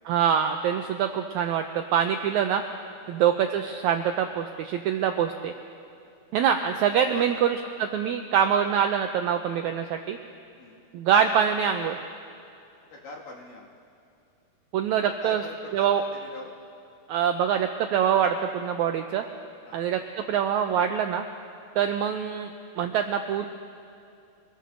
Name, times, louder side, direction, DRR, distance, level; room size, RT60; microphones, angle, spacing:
voice 1, 0.0-1.7 1.9-2.6 3.1-5.5 6.3-10.2 10.9-12.0 14.7-15.4 15.7-16.0 17.1-19.2 19.7-21.2 21.7-22.5 22.8-23.5, right 8 dB, 90° right, 5 dB, 1.6 m, -24 dB
voice 2, 12.9-13.8 15.2-16.5 19.7-19.9 21.7-21.9, left 2 dB, 75° left, -3 dB, 3.7 m, -43 dB
25.5 x 21.0 x 2.6 m, 2.6 s
omnidirectional pair, 4.0 m